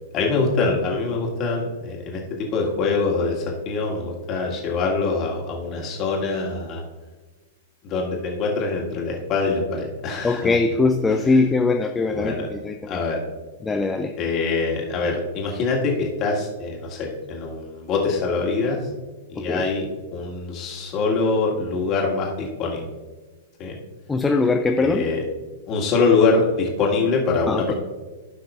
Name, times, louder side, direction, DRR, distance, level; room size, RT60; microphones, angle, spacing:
voice 1, 0.1-6.8 7.8-10.6 12.1-12.5 12.9-13.2 14.2-18.9 19.3-22.9 23.6-23.7 24.8-25.2 25.7-27.7, left 4 dB, 30° left, -1 dB, 1.9 m, -24 dB
voice 2, 10.2-13.0 13.6-14.2 19.4-19.6 24.1-25.1 27.5-27.7, left 3 dB, 10° left, 5 dB, 0.4 m, -21 dB
15.5 x 5.6 x 2.5 m, 1.3 s
figure-of-eight pair, 105°, 0 cm